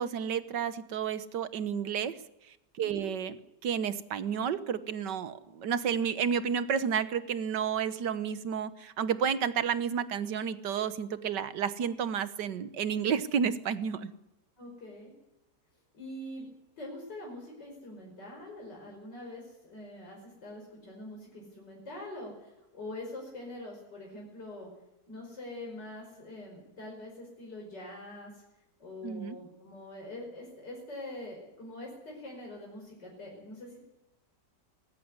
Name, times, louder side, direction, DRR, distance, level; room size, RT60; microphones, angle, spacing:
voice 1, 0.0-2.2 2.8-3.4 3.6-14.1 29.0-29.4, right 7 dB, 80° right, 14 dB, 1.7 m, -31 dB
voice 2, 2.8-3.1 14.6-15.1 15.9-16.5 16.8-24.7 25.1-28.4 28.8-33.9, left 1 dB, 80° left, -1 dB, 5.8 m, -44 dB
19.5 x 15.0 x 9.6 m, 0.92 s
omnidirectional pair, 1.8 m